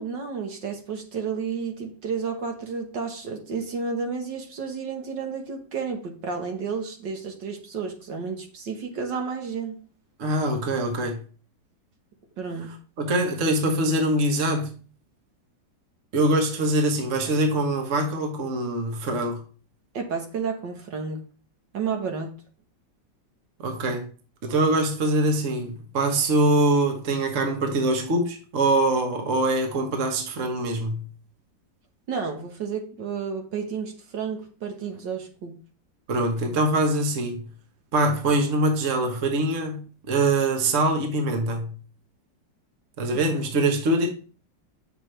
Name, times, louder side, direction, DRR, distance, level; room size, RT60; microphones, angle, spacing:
voice 1, 0.0-9.8 12.4-12.7 19.9-21.2 21.7-22.3 32.1-35.6, right 5 dB, 65° right, 1.9 m, -31 dB
voice 2, 10.2-11.2 13.0-14.7 16.1-19.4 23.6-24.1 24.4-31.1 36.1-37.5 37.9-41.7 43.0-44.1, right 1 dB, 45° right, 1.4 m, -23 dB
7.7 x 6.5 x 3.3 m
omnidirectional pair, 2.1 m